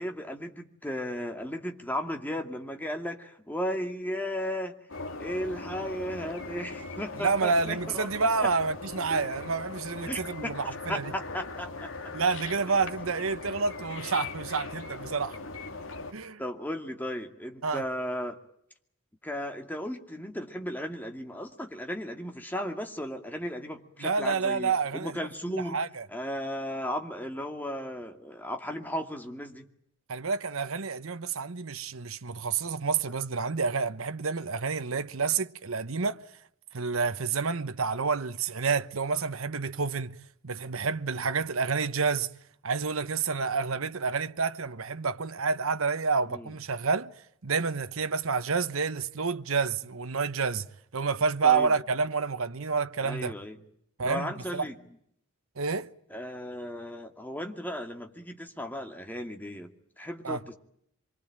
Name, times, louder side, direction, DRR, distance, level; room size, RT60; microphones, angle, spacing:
voice 1, 0.0-4.8 5.2-8.1 10.1-10.5 10.9-11.9 16.4-18.4 19.2-25.8 26.1-29.7 46.3-46.5 51.4-51.7 53.0-53.6 54.0-54.7 56.1-59.7 60.0-60.5, equal, 10° left, 2.4 m, -35 dB
sound 1, 4.9-16.1, left 3 dB, 70° left, 2.7 m, -40 dB
voice 2, 7.2-11.1 12.1-15.4 16.1-16.4 17.6-17.8 24.0-25.3 25.5-26.0 30.1-36.2 36.7-40.1 40.4-42.3 42.6-47.1 47.4-50.7 50.9-53.3 54.0-54.6 55.6-55.9 60.2-60.4, right 5 dB, 75° right, 1.0 m, -29 dB
26.0 x 24.0 x 8.9 m
head